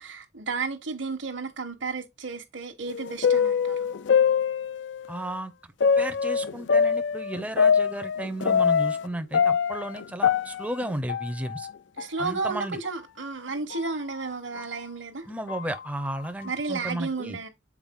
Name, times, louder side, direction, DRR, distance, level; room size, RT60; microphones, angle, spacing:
voice 1, 0.0-3.9 12.0-15.2 16.4-17.5, right 4 dB, 70° right, 1.2 m, -32 dB
sound 1, 2.9-5.1 5.8-9.1 9.3-11.7 12.0-12.1 12.8-12.9 13.7-13.9 14.6-14.7 15.5-15.8, left 6 dB, 65° left, 0.4 m, -24 dB
voice 2, 5.1-5.5 6.0-11.7 12.2-12.8 15.3-17.4, right 1 dB, 5° right, 0.6 m, -33 dB
7.2 x 4.5 x 3.6 m
head